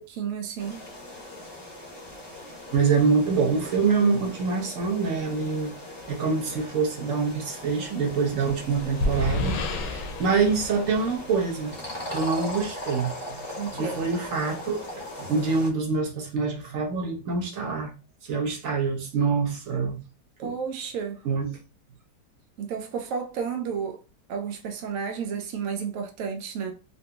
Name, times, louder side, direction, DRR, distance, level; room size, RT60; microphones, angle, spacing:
voice 1, 0.2-0.8 13.6-14.0 20.4-21.2 22.6-24.0 24.3-26.7, right 6 dB, 80° right, 0.7 m, -32 dB
sound 1, 0.6-15.7, left 1 dB, 25° left, 0.5 m, -39 dB
voice 2, 2.7-5.7 6.1-11.8 12.1-13.4 13.7-14.8 15.2-17.9 18.2-20.0 20.4-20.5 21.2-21.6, right 5 dB, 55° right, 1.1 m, -25 dB
sound 2, 8.3-11.8, left 2 dB, 75° left, 1.1 m, -31 dB
3.9 x 2.6 x 2.2 m
omnidirectional pair, 1.9 m